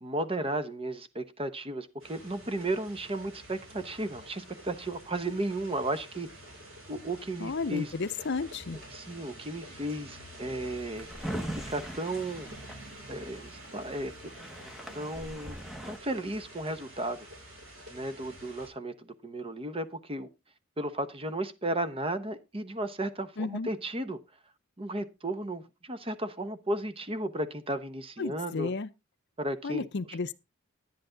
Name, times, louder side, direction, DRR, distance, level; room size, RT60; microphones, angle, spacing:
voice 1, 0.0-6.3 6.9-7.9 8.7-11.1 11.5-12.5 13.1-17.3 17.9-20.3 20.8-24.2 24.8-28.7 29.4-30.2, right 1 dB, 25° right, 0.9 m, -34 dB
sound 1, 2.0-18.7, right 1 dB, 70° right, 5.7 m, -48 dB
voice 2, 7.4-8.8 23.4-23.7 28.2-28.9 29.6-30.3, left 4 dB, 55° left, 0.6 m, -33 dB
Drawer open or close, 10.7-13.5 14.0-14.1 14.3-16.0, right 1 dB, ahead, 1.1 m, -40 dB
10.5 x 10.5 x 3.8 m
head